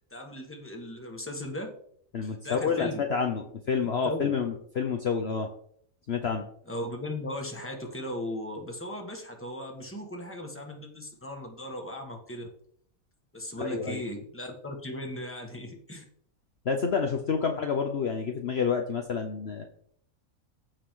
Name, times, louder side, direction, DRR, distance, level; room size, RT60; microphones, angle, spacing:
voice 1, 0.1-1.7 2.2-3.0 3.8-4.3 6.7-12.5 13.3-16.0, left 1 dB, 10° left, 2 dB, 1.5 m, -37 dB
voice 2, 2.1-5.5 6.1-6.4 13.6-14.0 16.6-19.7, left 6 dB, 50° left, 4 dB, 1.0 m, -29 dB
15.0 x 5.1 x 3.7 m, 0.63 s
omnidirectional pair, 1.5 m